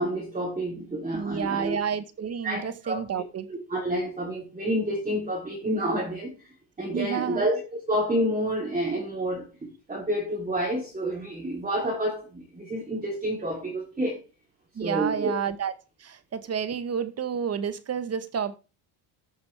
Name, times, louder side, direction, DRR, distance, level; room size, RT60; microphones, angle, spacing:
voice 1, 0.0-1.8 2.4-3.2 3.5-6.5 6.8-7.6 7.9-9.5 9.9-14.2 14.8-15.3, right 1 dB, 15° right, 2.9 m, -29 dB
voice 2, 1.1-3.5 6.9-7.4 14.7-15.7 16.0-18.6, right 7 dB, 30° right, 1.0 m, -30 dB
14.0 x 6.6 x 3.3 m
cardioid pair, 115°, 49 cm